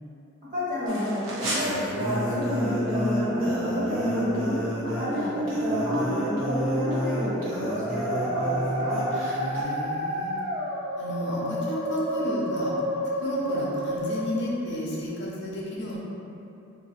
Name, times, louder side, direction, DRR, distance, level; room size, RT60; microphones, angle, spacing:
voice 1, 0.5-4.5 4.8-9.0, equal, 40° right, -12 dB, 1.4 m, -30 dB
sound 1, 0.9-9.6, equal, 85° right, 0.8 m, -31 dB
Musical instrument, 1.7-14.7, equal, 15° right, 0.6 m, -31 dB
voice 2, 9.1-10.4 11.0-12.7 13.2-16.0, equal, 55° left, -5 dB, 0.5 m, -32 dB
2.8 x 2.3 x 4.1 m, 2.8 s
head